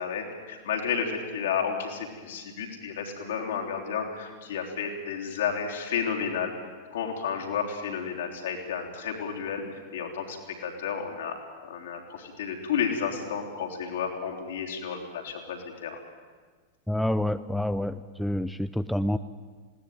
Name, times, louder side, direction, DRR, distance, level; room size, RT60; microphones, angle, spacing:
voice 1, 0.0-6.5 6.9-9.6 9.9-10.4 10.6-16.0, left 7 dB, 60° left, 1 dB, 3.6 m, -32 dB
voice 2, 16.9-19.2, left 1 dB, ahead, 12 dB, 0.5 m, -28 dB
20.5 x 17.5 x 9.3 m, 1.5 s
figure-of-eight pair, 90°, 0 cm